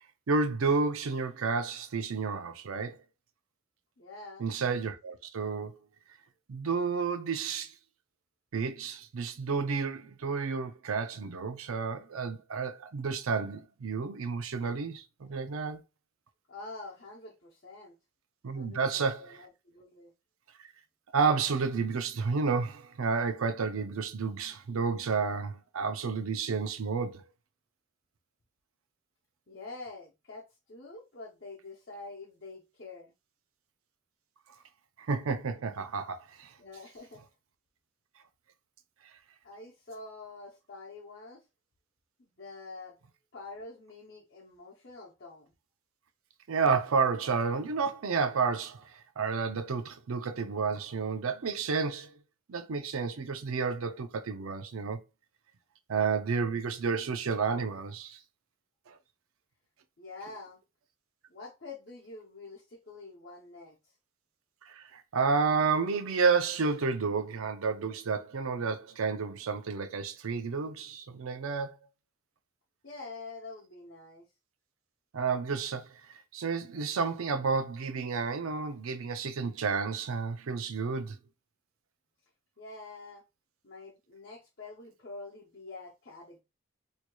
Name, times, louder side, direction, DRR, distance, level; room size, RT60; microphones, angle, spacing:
voice 1, 0.3-3.0 4.4-5.8 6.5-7.7 8.5-15.8 18.4-19.4 21.1-27.2 35.1-36.5 46.5-52.1 52.5-55.0 55.9-58.2 58.9-59.0 64.7-71.8 75.1-75.9 76.3-81.2, right 5 dB, 90° right, 0.5 m, -31 dB
voice 2, 4.0-4.5 16.5-17.9 18.5-20.1 29.5-33.1 36.6-37.2 39.4-41.4 42.2-43.0 43.3-45.5 60.0-60.6 61.3-63.8 72.8-74.3 82.6-83.2 83.6-86.4, left 3 dB, 55° left, 0.8 m, -46 dB
4.5 x 2.7 x 2.3 m
head